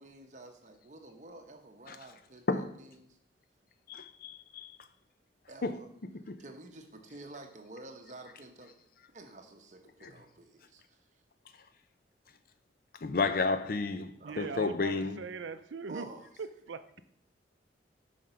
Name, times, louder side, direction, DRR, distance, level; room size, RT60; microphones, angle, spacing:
voice 1, 0.0-3.2 5.5-5.9 6.4-8.8 9.1-11.0 14.2-14.5 15.9-16.3, right 2 dB, 40° right, 1.0 m, -50 dB
voice 2, 3.9-4.8 5.6-5.8 6.1-6.4 10.0-10.1 13.0-15.2, left 3 dB, 50° left, 0.5 m, -32 dB
voice 3, 14.2-16.1 16.4-16.9, right 5 dB, 80° right, 0.5 m, -40 dB
7.4 x 5.0 x 5.7 m
head